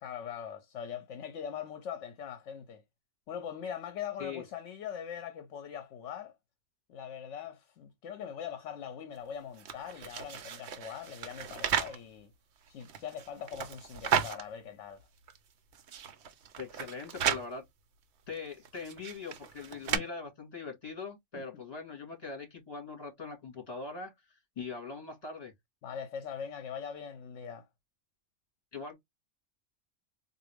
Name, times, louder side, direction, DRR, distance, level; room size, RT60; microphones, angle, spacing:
voice 1, 0.0-2.8 3.3-6.3 6.9-12.3 12.7-15.0 19.7-20.0 21.4-21.5 25.8-27.7, left 8 dB, 75° left, 0.9 m, -41 dB
sound 1, 9.5-12.0 12.7-14.4 15.0-15.1 15.3-15.4 15.7-17.5 18.3-20.0, right 8 dB, 65° right, 0.9 m, -34 dB
voice 2, 16.6-17.6 18.3-25.5 28.7-28.9, left 4 dB, 30° left, 1.9 m, -42 dB
3.9 x 2.5 x 3.3 m
omnidirectional pair, 1.3 m